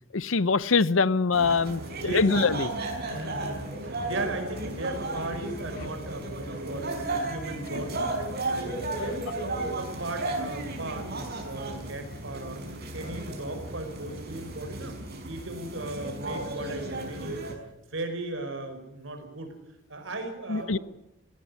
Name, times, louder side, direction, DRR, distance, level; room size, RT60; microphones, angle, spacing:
voice 1, 0.1-2.7 7.7-7.8 20.5-20.8, left 4 dB, 75° left, 18 dB, 0.7 m, -24 dB
sound 1, 1.3-17.5, right 2 dB, 55° right, 5.6 m, -34 dB
voice 2, 2.0-2.6 3.0-9.2 9.6-12.6 12.9-15.0 15.3-17.4 17.6-19.6 19.9-20.8, right 2 dB, 70° right, 7 dB, 5.2 m, -37 dB
19.0 x 17.5 x 9.6 m, 0.84 s
head